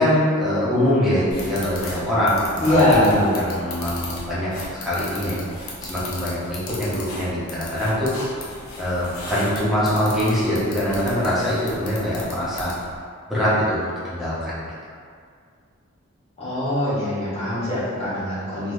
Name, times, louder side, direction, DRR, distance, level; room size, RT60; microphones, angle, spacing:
voice 1, 0.0-8.5 8.7-12.7 13.3-14.7, equal, ahead, -11 dB, 0.8 m, -23 dB
sound 1, 1.3-13.0, left 2 dB, 75° left, 0.6 m, -37 dB
voice 2, 2.6-3.3 16.4-18.7, left 1 dB, 30° left, -12 dB, 1.4 m, -21 dB
3.4 x 2.6 x 2.6 m, 2.2 s
head